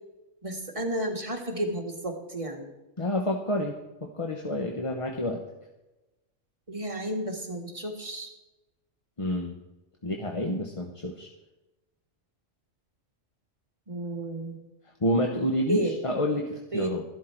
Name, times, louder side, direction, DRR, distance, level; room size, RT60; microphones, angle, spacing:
voice 1, 0.4-2.7 6.7-8.3 13.9-14.6 15.7-15.9 16.7-16.9, right 1 dB, 25° right, 2 dB, 1.7 m, -32 dB
voice 2, 3.0-3.7 4.0-5.4 9.2-9.6 10.0-11.3 15.0-17.0, left 1 dB, 25° left, 2 dB, 1.0 m, -29 dB
13.0 x 12.0 x 4.5 m, 1.0 s
omnidirectional pair, 1.4 m